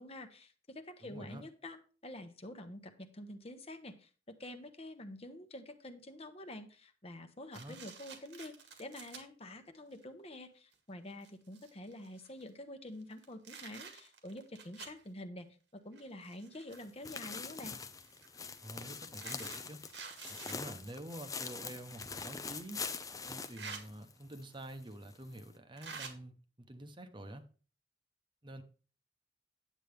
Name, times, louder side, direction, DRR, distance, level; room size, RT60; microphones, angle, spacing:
voice 1, 0.0-1.8 2.0-8.5 8.8-17.7, left 1 dB, 35° left, 1.0 m, -48 dB
voice 2, 1.0-1.4 7.6-7.8 18.6-19.8 20.3-22.8 23.2-27.4 28.4-28.6, right 1 dB, 25° right, 0.9 m, -48 dB
sound 1, 7.5-9.2 9.9-10.0 10.7-10.8 11.1-12.5 13.0-15.0 15.9-17.0 18.0-20.6 21.9-22.0 23.3-23.8 24.9-25.0 25.8-26.1, right 5 dB, 85° right, 2.0 m, -49 dB
sound 2, 16.7-24.4 24.7-24.8 25.3-25.4, left 5 dB, 20° left, 0.6 m, -44 dB
9.5 x 8.0 x 3.5 m
head